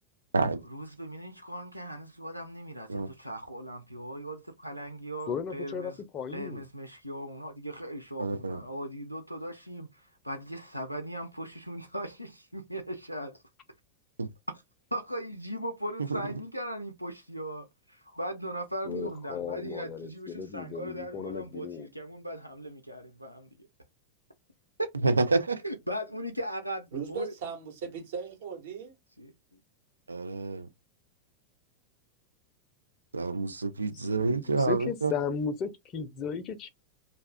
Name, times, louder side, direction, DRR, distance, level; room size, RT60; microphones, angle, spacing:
voice 1, 0.5-6.0 6.3-13.4 14.5-14.6 14.9-23.7 24.8-24.9 25.6-27.3 29.2-29.6, right 1 dB, 90° left, 0.4 m, -38 dB
voice 2, 5.3-6.6 18.8-21.9 33.9-36.7, left 6 dB, 35° left, 0.5 m, -35 dB
voice 3, 8.2-8.6 14.2-14.3 16.1-16.3 25.0-25.6 30.1-30.7 33.1-35.1, right 3 dB, 75° right, 0.4 m, -28 dB
voice 4, 26.9-29.0, right 6 dB, 55° right, 1.1 m, -38 dB
2.5 x 2.3 x 3.3 m
figure-of-eight pair, 90°, 0 cm